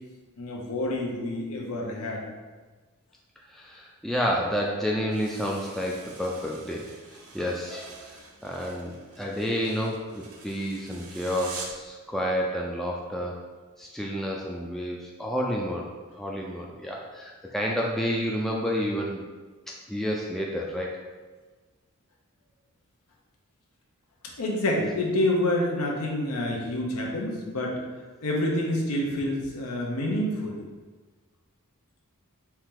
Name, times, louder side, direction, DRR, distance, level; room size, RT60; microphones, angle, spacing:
voice 1, 0.4-2.2 24.4-27.8 28.2-30.6, left 1 dB, 90° left, -1 dB, 0.9 m, -27 dB
voice 2, 3.5-6.9 7.3-8.2 8.4-13.4 13.8-15.9 16.1-19.2 19.9-21.0, equal, ahead, -2 dB, 0.3 m, -30 dB
sound 1, 5.1-11.9, right 4 dB, 75° right, 0.7 m, -45 dB
4.6 x 2.9 x 3.7 m, 1.3 s
head